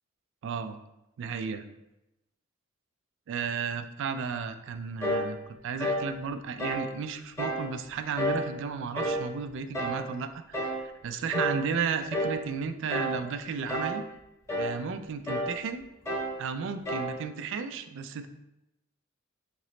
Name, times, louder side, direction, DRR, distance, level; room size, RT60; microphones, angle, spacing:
voice 1, 0.4-0.8 1.2-1.6 3.3-14.0 14.6-15.8 16.4-18.3, right 6 dB, 60° right, 9 dB, 0.3 m, -34 dB
sound 1, 5.0-5.3 5.8-6.1 6.6-6.9 7.4-7.7 8.2-8.5 8.9-9.3 9.7-10.0 10.5-10.8 11.3-11.6 12.1-12.4 12.9-13.2 13.7-14.0 14.5-14.8 15.3-15.6 16.1-16.4 16.9-17.2, equal, 15° left, 0.7 m, -30 dB
3.9 x 2.9 x 3.1 m, 0.90 s
head